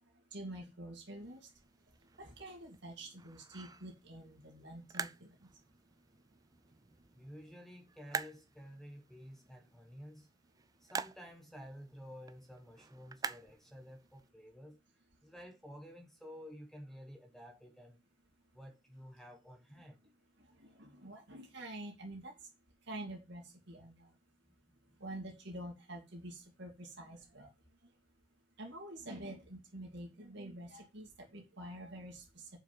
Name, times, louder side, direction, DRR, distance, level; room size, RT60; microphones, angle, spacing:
voice 1, 0.3-1.5 2.2-5.4 20.4-22.3 22.9-24.1 25.0-27.5 28.6-32.5, right 1 dB, 60° right, 2.5 m, -47 dB
sound 1, 1.1-14.3, right 4 dB, 20° right, 0.4 m, -48 dB
voice 2, 7.1-10.3 10.8-14.8 15.2-18.0 18.5-20.0 24.5-25.0, equal, ahead, 1.1 m, -52 dB
7.4 x 5.7 x 5.8 m
head